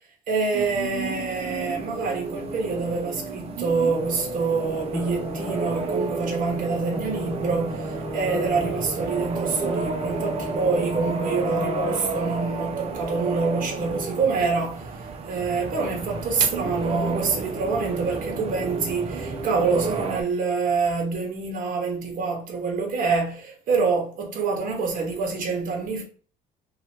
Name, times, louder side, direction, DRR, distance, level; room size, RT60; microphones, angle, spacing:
voice 1, 0.3-26.0, right 4 dB, 55° right, 1.1 m, -26 dB
sound 1, 0.5-20.2, right 4 dB, 35° right, 0.6 m, -32 dB
sound 2, 4.6-12.3, left 2 dB, 15° left, 0.6 m, -35 dB
2.9 x 2.4 x 4.3 m
cardioid pair, 110°, 17 cm